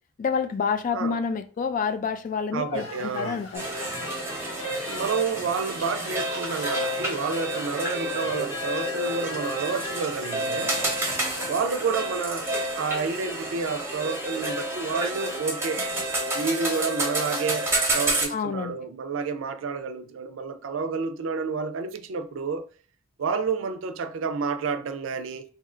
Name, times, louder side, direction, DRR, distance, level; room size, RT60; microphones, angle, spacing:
voice 1, 0.2-3.7 18.3-18.8, left 5 dB, 40° left, 0.3 m, -28 dB
voice 2, 2.5-3.4 4.8-10.8 11.5-15.9 16.3-22.7 23.2-25.4, right 5 dB, 70° right, 0.4 m, -30 dB
sound 1, 2.7-11.5, left 1 dB, 75° left, 1.2 m, -42 dB
sound 2, 3.5-18.3, right 1 dB, 15° right, 0.8 m, -29 dB
2.7 x 2.5 x 4.2 m
head